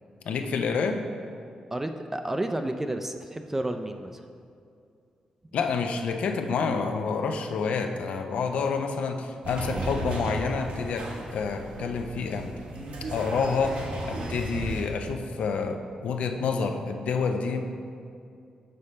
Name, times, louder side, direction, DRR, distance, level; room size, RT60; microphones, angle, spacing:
voice 1, 0.2-1.0 5.5-12.5 13.1-17.6, left 5 dB, 80° left, 5 dB, 0.5 m, -28 dB
voice 2, 1.7-4.2, right 1 dB, 15° right, 6 dB, 0.3 m, -31 dB
sound 1, 9.4-14.8, right 1 dB, 75° right, 1.1 m, -34 dB
6.5 x 5.3 x 4.3 m, 2.4 s
cardioid pair, 95°, 2 cm